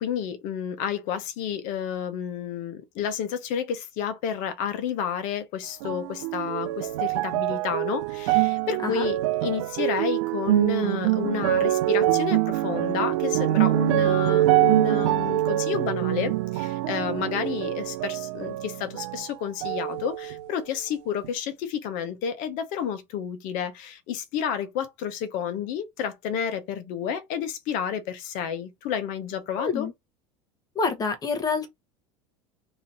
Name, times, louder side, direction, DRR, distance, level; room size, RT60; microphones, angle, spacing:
voice 1, 0.0-29.9, left 8 dB, 60° left, 1.0 m, -30 dB
sound 1, 5.8-19.3 19.6-20.6 21.2-21.3, right 15 dB, 80° right, 0.4 m, -25 dB
voice 2, 29.6-29.9 30.7-31.7, left 4 dB, 25° left, 1.0 m, -27 dB
3.0 x 2.7 x 4.0 m
supercardioid pair, 100°, 15 cm